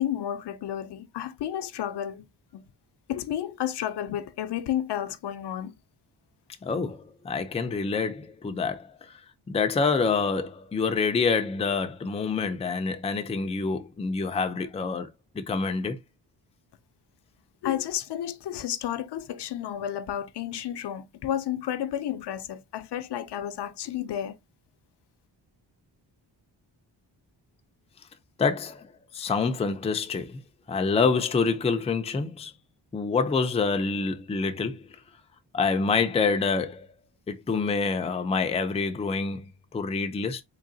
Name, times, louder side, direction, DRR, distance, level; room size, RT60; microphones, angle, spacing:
voice 1, 0.0-2.2 2.5-2.6 3.1-5.7 17.6-24.4, left 11 dB, 70° left, 0.5 m, -31 dB
voice 2, 6.6-9.2 9.5-15.1 15.3-16.0 28.4-30.4 30.7-32.5 32.9-34.9 35.5-36.9 37.3-40.4, left 4 dB, 15° left, 0.4 m, -27 dB
3.8 x 2.8 x 2.7 m
wide cardioid pair, 125°, 43 cm